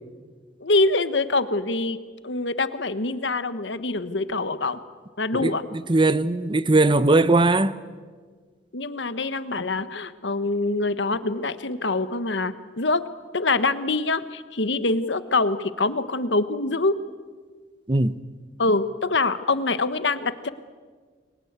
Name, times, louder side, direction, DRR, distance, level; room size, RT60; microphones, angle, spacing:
voice 1, 0.6-4.8 5.2-5.6 8.7-13.0 13.3-16.9 18.6-20.5, left 3 dB, 75° left, 1.3 m, -25 dB
voice 2, 5.3-7.7 17.9-18.2, right 2 dB, 25° right, 0.8 m, -20 dB
29.5 x 23.0 x 8.2 m
head